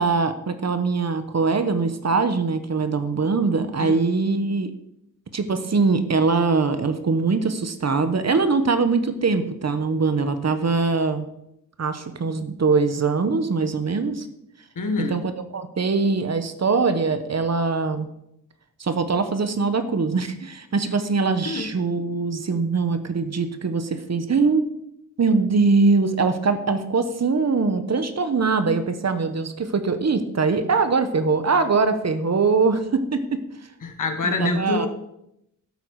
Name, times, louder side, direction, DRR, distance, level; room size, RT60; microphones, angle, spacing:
voice 1, 0.0-4.7 5.3-11.3 11.8-14.3 15.0-18.1 18.8-24.6 25.2-33.4 34.2-34.9, right 4 dB, 55° right, 9 dB, 1.1 m, -22 dB
voice 2, 14.7-15.2 21.4-21.7 33.8-34.9, left 3 dB, 70° left, 5 dB, 1.6 m, -26 dB
12.5 x 8.3 x 4.8 m, 0.80 s
wide cardioid pair, 120°, 32 cm